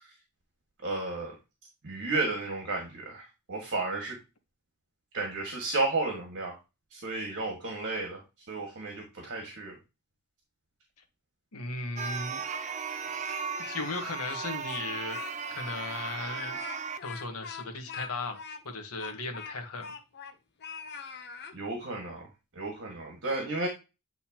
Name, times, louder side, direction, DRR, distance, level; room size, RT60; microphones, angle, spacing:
voice 1, 0.8-1.4 1.8-4.2 5.1-6.6 6.9-9.8 21.5-22.3 22.5-23.7, right 3 dB, 55° right, 1 dB, 1.7 m, -33 dB
voice 2, 11.5-12.4 13.7-15.2 15.5-16.6 17.0-19.9, left 3 dB, 70° left, 4 dB, 1.4 m, -36 dB
sound 1, 12.0-17.0, right 6 dB, 35° right, 0.5 m, -36 dB
Speech, 13.0-14.0 14.3-15.3 15.7-15.8 16.3-20.4 20.6-21.6, left 6 dB, 50° left, 0.8 m, -43 dB
8.8 x 4.0 x 2.9 m, 0.26 s
head